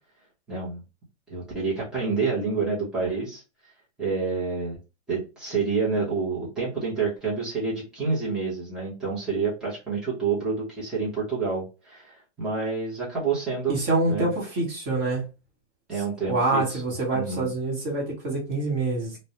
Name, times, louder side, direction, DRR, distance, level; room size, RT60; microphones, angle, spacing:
voice 1, 0.5-0.8 1.3-3.4 4.0-4.8 5.1-13.8 14.0-14.3 15.9-16.8 17.1-17.5, right 4 dB, ahead, 0.6 m, -28 dB
voice 2, 13.7-15.3 16.3-19.2, right 2 dB, 25° right, 0.9 m, -26 dB
2.2 x 2.0 x 2.7 m
hypercardioid pair, 155°, 34 cm